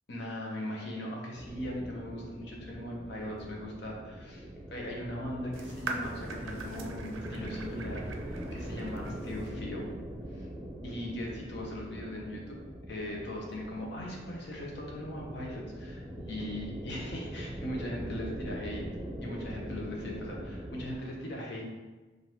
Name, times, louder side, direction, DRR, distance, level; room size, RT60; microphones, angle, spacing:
voice 1, 0.1-9.9 10.3-10.5 10.8-12.6 12.9-18.8 19.2-21.7, left 1 dB, 60° left, -2 dB, 0.8 m, -39 dB
sound 1, 1.3-21.0, equal, 20° right, 0.6 m, -42 dB
sound 2, 5.5-9.5, right 3 dB, 85° right, 0.5 m, -42 dB
5.1 x 2.6 x 2.9 m, 1.2 s
head